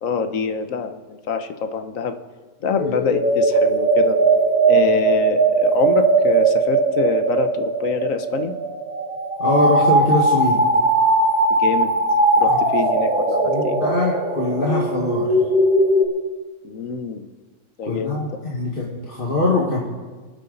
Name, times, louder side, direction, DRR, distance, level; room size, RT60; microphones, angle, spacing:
voice 1, 0.0-2.2 2.6-4.2 4.7-8.5 11.6-11.9 12.4-13.8 16.6-17.3 17.8-18.2, left 6 dB, 85° left, 8 dB, 1.3 m, -25 dB
voice 2, 2.8-3.1 9.4-10.6 12.4-12.6 13.4-15.3 17.8-19.8, left 2 dB, 45° left, -4 dB, 1.9 m, -22 dB
sound 1, 2.8-16.0, right 2 dB, 5° right, 3.0 m, -19 dB
26.0 x 9.0 x 4.0 m, 1.4 s
omnidirectional pair, 1.3 m